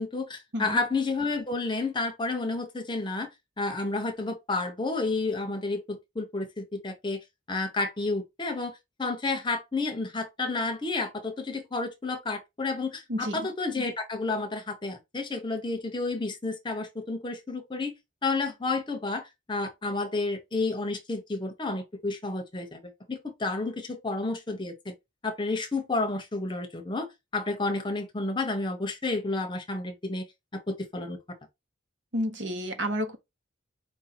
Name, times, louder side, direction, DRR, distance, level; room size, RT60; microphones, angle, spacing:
voice 1, 0.0-3.3 3.6-17.9 18.2-24.9 25.2-30.3 30.5-31.4, left 3 dB, 25° left, 0.8 m, -31 dB
voice 2, 13.1-13.5 32.1-33.2, equal, 60° right, 1.1 m, -30 dB
4.6 x 2.7 x 4.3 m
head